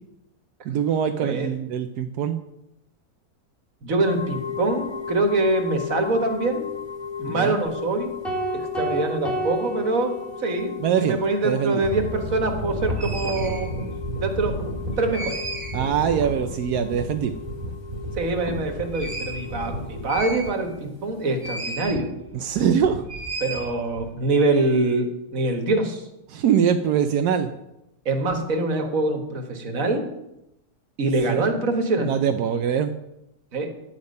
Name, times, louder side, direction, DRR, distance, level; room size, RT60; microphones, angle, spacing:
voice 1, 0.6-2.4 7.3-7.6 10.8-11.8 15.7-17.3 22.3-23.0 26.3-27.5 31.3-31.4 32.0-32.9, right 8 dB, 85° right, 7 dB, 1.2 m, -23 dB
voice 2, 1.2-1.5 3.8-6.7 7.2-8.1 8.5-13.7 14.2-14.5 15.0-15.4 18.2-22.1 23.4-26.1 28.1-30.1 31.0-32.1 33.5-33.7, right 2 dB, 60° right, 4 dB, 1.9 m, -24 dB
sound 1, 4.0-21.7, left 8 dB, 25° left, 0.6 m, -36 dB
sound 2, 8.2-10.7, right 2 dB, ahead, 2.6 m, -30 dB
sound 3, 11.8-20.9 21.4-22.0 22.3-24.1, right 1 dB, 25° right, 2.0 m, -32 dB
10.5 x 8.7 x 5.3 m, 0.88 s
omnidirectional pair, 1.6 m